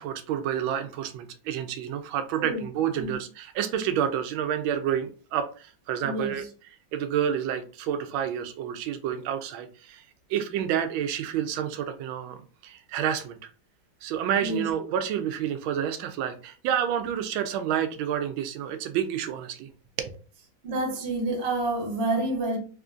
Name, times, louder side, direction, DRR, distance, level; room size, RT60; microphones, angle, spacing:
voice 1, 0.0-6.4 6.9-10.0 10.3-13.5 14.0-19.7 20.0-20.2, right 9 dB, 85° right, 1.4 m, -29 dB
voice 2, 6.0-6.5 14.4-14.7 20.6-22.6, right 2 dB, 45° right, 0.9 m, -28 dB
3.6 x 3.0 x 2.5 m
omnidirectional pair, 2.2 m